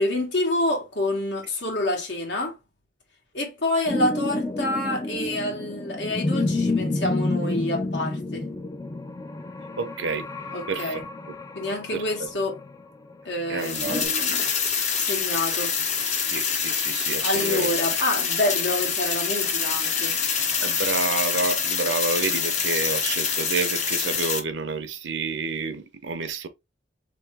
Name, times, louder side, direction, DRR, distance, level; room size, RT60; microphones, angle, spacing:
voice 1, 0.0-2.5 3.3-8.5 10.5-11.0 11.5-12.6 13.2-14.5 14.9-15.7 17.2-20.1, left 1 dB, 70° left, 1.4 m, -27 dB
sound 1, 3.9-14.1, left 2 dB, 20° left, 0.4 m, -29 dB
voice 2, 9.8-10.3 10.7-11.0 11.9-12.3 13.5-14.1 16.2-17.7 20.6-26.5, right 4 dB, 70° right, 0.7 m, -29 dB
sound 2, 13.6-24.4, left 6 dB, 40° left, 0.7 m, -26 dB
3.2 x 3.1 x 3.3 m
head